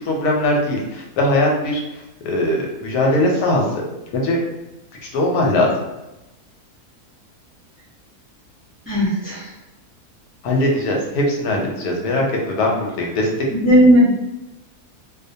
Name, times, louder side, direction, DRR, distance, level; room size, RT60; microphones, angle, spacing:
voice 1, 0.0-3.8 4.1-4.4 5.0-5.7 10.4-13.3, left 1 dB, 90° left, 0 dB, 1.1 m, -20 dB
voice 2, 8.9-9.5 13.5-14.1, equal, 15° right, -8 dB, 0.5 m, -15 dB
2.5 x 2.1 x 2.6 m, 0.96 s
omnidirectional pair, 1.6 m